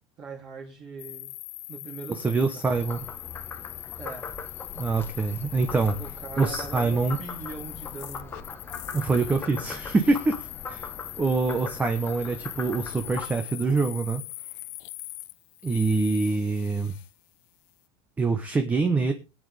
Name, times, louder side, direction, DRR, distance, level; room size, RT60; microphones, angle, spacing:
voice 1, 0.2-1.3 1.7-2.9 4.0-4.3 6.0-8.4, right 5 dB, 35° right, -3 dB, 3.0 m, -41 dB
sound 1, 1.0-17.1, left 19 dB, 60° left, 0.9 m, -41 dB
voice 2, 2.1-3.0 4.8-6.0 6.4-7.2 8.9-10.9 11.2-14.2 15.6-16.9 18.2-19.1, right 3 dB, 10° right, 6 dB, 1.0 m, -25 dB
Frog, 2.6-13.3, left 5 dB, 15° left, 1.1 m, -40 dB
21.5 x 8.7 x 3.4 m, 0.31 s
supercardioid pair, 160°, 13 cm